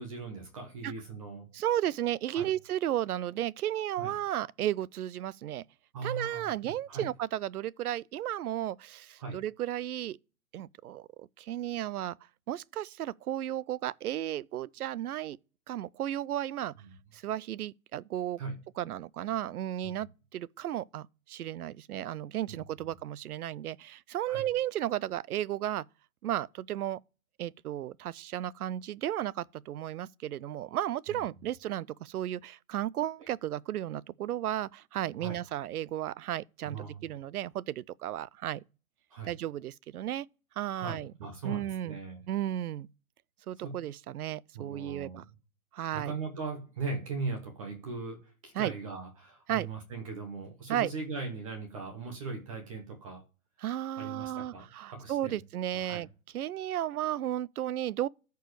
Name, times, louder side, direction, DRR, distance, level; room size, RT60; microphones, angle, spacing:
voice 1, 0.0-1.5 2.3-2.5 4.0-4.1 5.9-7.1 9.2-9.4 16.8-16.9 18.4-18.6 19.8-20.0 22.5-22.6 24.3-24.5 31.1-31.2 33.2-33.3 35.2-35.4 36.6-37.1 39.1-39.3 40.7-42.2 43.6-43.8 44.5-45.2 45.9-53.2 54.0-55.4 55.8-56.0, right 4 dB, 25° right, 1.1 m, -39 dB
voice 2, 1.5-5.6 6.0-10.2 10.5-12.2 12.5-15.4 15.7-16.7 17.1-18.4 18.8-20.1 20.3-25.8 26.2-27.0 27.4-38.6 39.2-40.3 40.6-41.1 41.4-42.0 42.3-42.9 43.5-45.2 45.7-46.1 48.5-48.7 49.5-49.7 50.7-50.9 53.6-56.1 56.3-58.1, right 12 dB, 85° right, 0.5 m, -34 dB
14.0 x 4.6 x 3.1 m
hypercardioid pair, 170°, 43 cm